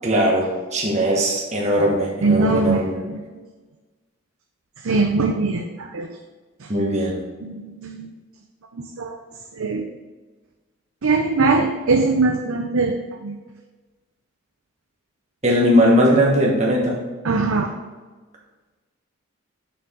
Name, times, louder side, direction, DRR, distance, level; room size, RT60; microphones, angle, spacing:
voice 1, 0.0-3.0 6.7-7.2 15.4-17.0, equal, 30° right, -2 dB, 1.3 m, -19 dB
voice 2, 2.2-2.8 3.1-3.2 4.8-6.1 7.4-8.1 9.0-9.2 9.6-9.8 11.0-12.9 13.2-13.3 17.2-17.7, right 3 dB, 80° right, 3 dB, 0.6 m, -21 dB
6.7 x 6.7 x 3.7 m, 1.3 s
head